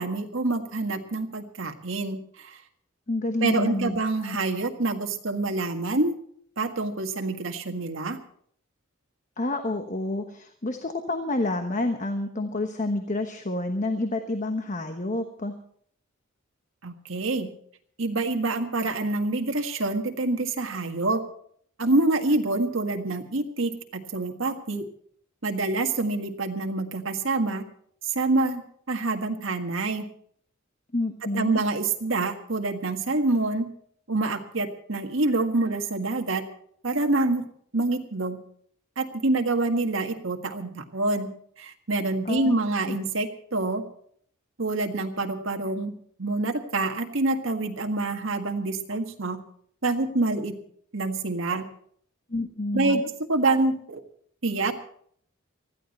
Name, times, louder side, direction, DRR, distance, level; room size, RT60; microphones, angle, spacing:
voice 1, 0.0-2.6 3.4-6.2 6.6-8.2 16.8-17.5 18.0-21.2 21.8-24.8 25.4-27.6 28.1-30.0 31.3-33.7 34.1-36.4 36.8-37.4 37.7-38.4 39.0-41.3 41.6-43.8 44.6-45.9 46.2-49.4 49.8-50.6 50.9-51.6 52.7-53.0 53.3-54.0 54.4-54.7, right 2 dB, 70° right, 4 dB, 1.7 m, -26 dB
voice 2, 3.1-4.0 4.2-4.4 9.4-15.5 30.9-31.6 42.2-42.5 42.9-43.0 52.3-53.0, left 2 dB, 40° left, 6 dB, 1.1 m, -29 dB
19.5 x 14.5 x 4.3 m, 0.62 s
head